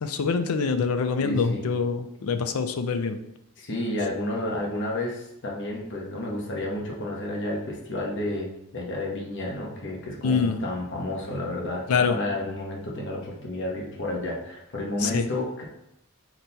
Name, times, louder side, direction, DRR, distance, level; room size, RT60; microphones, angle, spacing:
voice 1, 0.0-3.2 10.2-10.6 11.9-12.2 15.0-15.2, left 5 dB, 80° left, 9 dB, 0.4 m, -25 dB
voice 2, 1.2-1.7 3.6-15.6, left 1 dB, 55° left, -2 dB, 0.8 m, -31 dB
6.0 x 2.2 x 4.0 m, 0.82 s
head